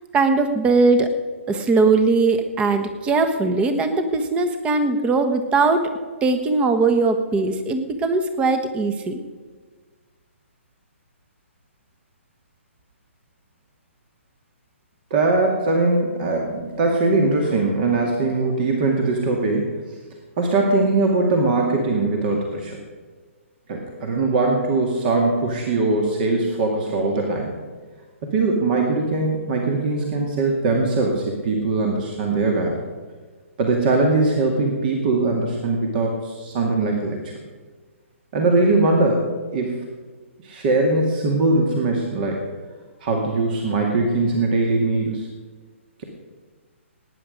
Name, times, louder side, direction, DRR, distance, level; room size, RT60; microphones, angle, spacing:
voice 1, 0.1-1.1 1.5-5.9 6.2-9.2, right 3 dB, 15° right, 8 dB, 1.2 m, -20 dB
voice 2, 15.1-19.7 20.4-22.8 23.7-27.5 28.2-32.8 33.6-37.3 38.3-39.8 40.4-42.4 43.0-45.3, right 3 dB, 40° right, 1 dB, 2.1 m, -21 dB
18.5 x 9.7 x 5.2 m, 1.5 s
figure-of-eight pair, 135°, 7 cm